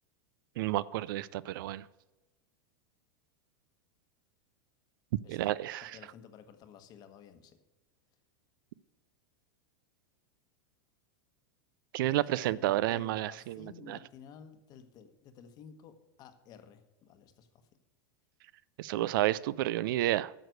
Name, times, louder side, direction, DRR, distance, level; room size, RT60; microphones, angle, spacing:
voice 1, 0.6-1.8 5.3-6.0 11.9-14.0 18.8-20.3, right 15 dB, 65° right, 20 dB, 0.4 m, -31 dB
voice 2, 5.8-7.6 12.1-17.5, left 7 dB, 35° left, 9 dB, 1.1 m, -53 dB
9.2 x 6.6 x 6.4 m, 1.1 s
supercardioid pair, 150°, 12 cm